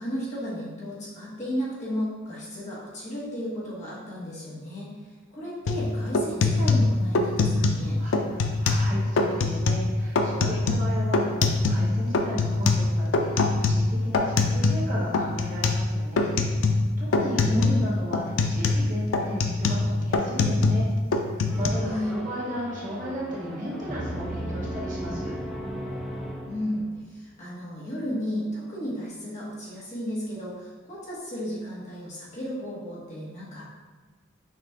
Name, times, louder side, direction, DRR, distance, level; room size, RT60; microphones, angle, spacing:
voice 1, 0.0-4.9 5.3-8.0 17.1-17.7 21.8-22.1 26.4-33.6, equal, 35° left, -7 dB, 1.3 m, -33 dB
sound 1, 5.7-5.8 6.1-7.9 8.1-8.9 9.2-9.9 10.2-11.9 12.1-14.9 15.1-15.9 16.2-16.9 17.1-17.8 18.1-20.9 21.1-21.7, left 3 dB, 85° left, 0.4 m, -23 dB
voice 2, 8.0-20.9 21.2-25.3, equal, 40° right, -6 dB, 1.1 m, -35 dB
sound 2, 21.5-27.1, equal, ahead, 0.6 m, -36 dB
5.8 x 2.5 x 3.5 m, 1.3 s
head